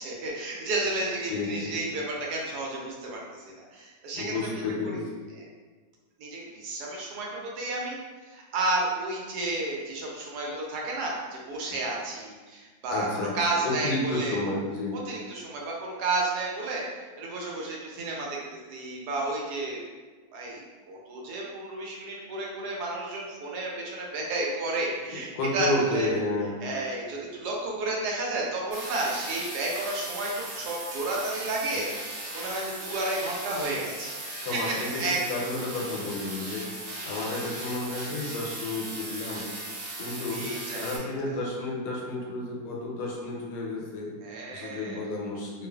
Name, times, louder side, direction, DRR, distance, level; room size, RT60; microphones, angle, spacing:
voice 1, 0.0-3.4 3.7-4.5 5.3-5.5 6.2-8.0 8.3-14.4 14.9-16.9 17.2-18.4 18.7-19.8 20.3-26.1 26.6-34.2 34.5-35.2 35.4-35.5 36.9-37.2 40.3-41.3 44.2-45.0, right 2 dB, 85° right, -2 dB, 1.1 m, -32 dB
voice 2, 1.3-1.7 4.1-5.1 12.9-13.3 13.6-15.0 25.1-26.5 31.7-31.8 34.4-36.7 37.0-39.5 40.0-40.5 40.8-44.1 44.5-45.7, left 2 dB, 85° left, -2 dB, 1.2 m, -31 dB
sound 1, 28.7-41.0, right 1 dB, 70° right, 0.8 m, -38 dB
2.7 x 2.4 x 2.2 m, 1.4 s
omnidirectional pair, 1.7 m